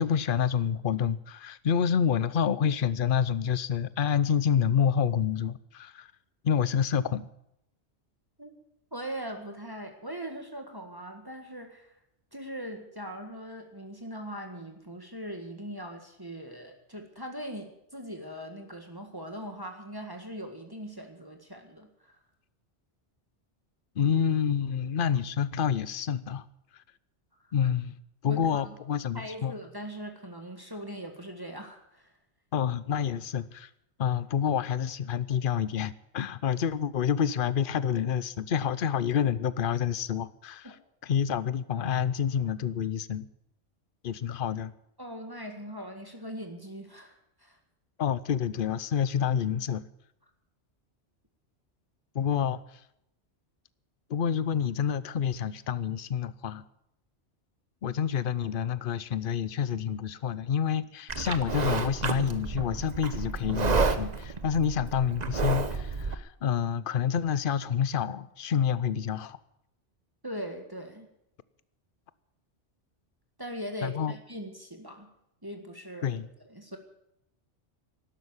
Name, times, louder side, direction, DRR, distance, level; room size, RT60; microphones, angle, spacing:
voice 1, 0.0-6.1 6.4-7.3 24.0-26.4 27.5-27.9 28.2-29.5 32.5-33.7 34.0-40.8 41.0-43.3 44.0-44.7 48.0-49.8 52.1-52.8 54.1-56.6 57.8-69.4 73.8-74.2 76.0-76.3, left 8 dB, 55° left, 17 dB, 0.8 m, -28 dB
voice 2, 8.9-12.0 12.3-22.2 28.3-28.7 29.1-32.1 40.6-40.7 45.0-47.6 70.2-71.1 73.4-75.1 75.4-76.2 76.5-76.8, equal, 20° right, 4 dB, 1.8 m, -40 dB
Livestock farm animals working animals, 61.1-66.1, right 4 dB, 40° right, 1.1 m, -30 dB
12.0 x 12.0 x 9.7 m, 0.80 s
omnidirectional pair, 1.2 m